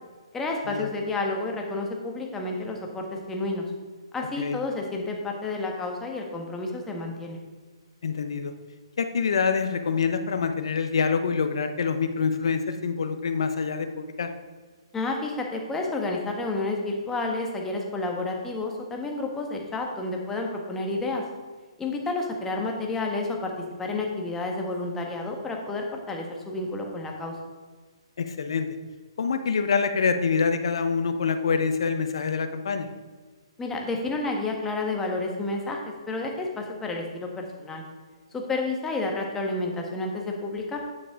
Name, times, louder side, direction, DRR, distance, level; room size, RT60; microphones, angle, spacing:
voice 1, 0.3-3.7 4.1-7.4 14.9-21.2 21.8-23.5 23.8-27.4 33.6-37.8 38.3-40.9, left 2 dB, 10° left, 1 dB, 1.4 m, -30 dB
voice 2, 8.0-8.5 9.0-14.3 28.2-28.7 29.2-32.9, left 5 dB, 70° left, 9 dB, 0.9 m, -26 dB
9.7 x 7.1 x 3.7 m, 1.4 s
hypercardioid pair, 145°, 3 cm